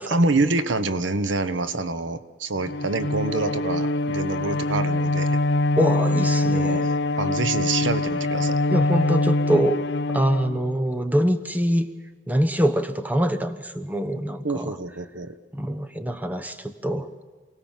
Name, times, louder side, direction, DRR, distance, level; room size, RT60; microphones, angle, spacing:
voice 1, 0.1-5.4 6.4-6.9 7.2-8.6 14.4-15.3, right 3 dB, 90° right, 12 dB, 1.1 m, -26 dB
Bowed string instrument, 2.6-11.0, left 2 dB, 65° left, 0.8 m, -24 dB
voice 2, 5.8-6.9 8.7-9.8 10.1-11.9 12.3-14.8 15.5-17.1, equal, 10° right, 9 dB, 1.0 m, -24 dB
28.0 x 18.5 x 7.4 m, 1.5 s
head